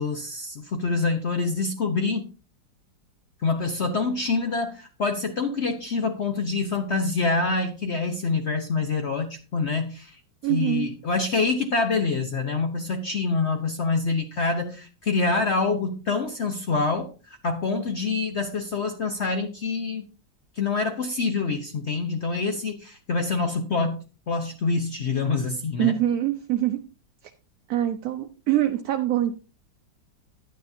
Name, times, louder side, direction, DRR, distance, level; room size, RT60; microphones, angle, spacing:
voice 1, 0.0-2.3 3.4-10.2 10.5-20.1 20.6-24.0 24.3-25.9, left 4 dB, 60° left, 6 dB, 0.7 m, -26 dB
voice 2, 10.4-10.9 25.8-26.8 27.7-29.3, right 12 dB, 65° right, 6 dB, 0.9 m, -24 dB
10.5 x 9.4 x 2.7 m, 0.35 s
omnidirectional pair, 2.0 m